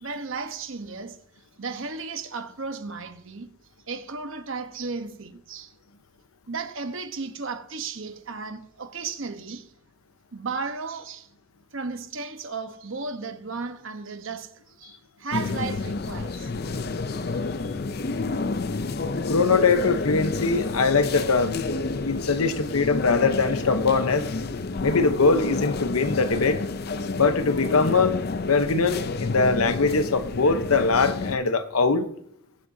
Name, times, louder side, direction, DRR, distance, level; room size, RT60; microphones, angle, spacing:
voice 1, 0.0-1.2 1.6-3.5 3.9-5.7 6.5-9.7 10.3-11.3 11.7-16.5 17.2-17.4, right 4 dB, 65° right, 1.0 m, -34 dB
sound 1, 15.3-31.4, left 3 dB, 45° left, 0.5 m, -29 dB
voice 2, 19.3-21.6 22.0-24.3 24.8-26.6 27.2-32.1, left 4 dB, 85° left, 0.9 m, -22 dB
22.0 x 7.7 x 2.7 m
head